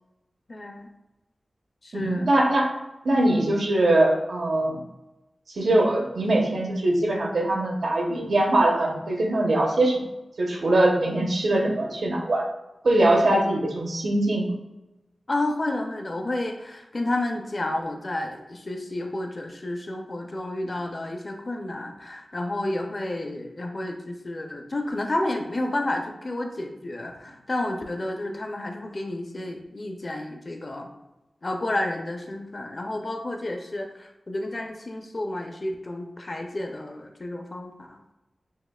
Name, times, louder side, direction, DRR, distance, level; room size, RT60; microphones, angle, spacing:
voice 1, 0.5-0.9 1.8-2.3 15.3-30.9 31.4-38.1, left 1 dB, 40° left, 3 dB, 0.6 m, -31 dB
voice 2, 1.9-2.7 3.0-4.8 5.5-10.0 10.4-12.5 12.8-14.5, right 1 dB, 75° right, 0 dB, 0.9 m, -22 dB
6.3 x 2.4 x 2.4 m, 0.98 s
wide cardioid pair, 95°, 0 cm